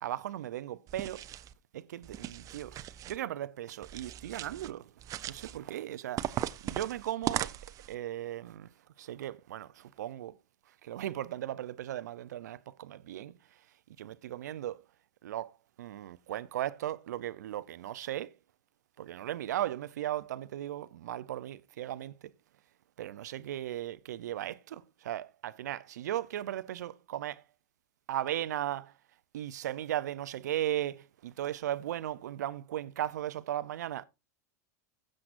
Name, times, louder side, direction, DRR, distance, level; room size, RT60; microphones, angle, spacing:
voice 1, 0.0-1.3 1.7-4.9 5.2-7.5 7.9-8.7 9.0-10.3 10.8-13.3 14.0-14.8 15.2-18.3 19.0-22.3 23.0-27.4 28.1-28.9 29.3-34.0, right 12 dB, 80° right, 0.5 m, -37 dB
sound 1, 0.9-1.5 2.0-3.2 3.8-4.7 5.0-5.6 6.2-7.9, right 12 dB, 40° right, 0.6 m, -38 dB
15.5 x 7.5 x 2.5 m
hypercardioid pair, 100°, 9 cm